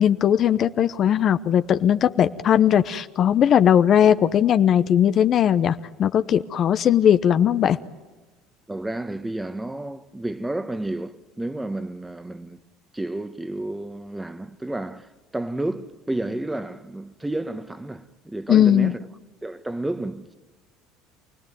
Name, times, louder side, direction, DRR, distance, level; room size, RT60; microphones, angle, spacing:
voice 1, 0.0-7.8 18.5-18.9, left 9 dB, 50° left, 0.9 m, -18 dB
voice 2, 8.7-12.6 12.9-15.1 15.3-19.0 19.4-20.3, right 1 dB, 10° right, 1.3 m, -31 dB
28.0 x 18.5 x 9.4 m
supercardioid pair, 85°, 0 cm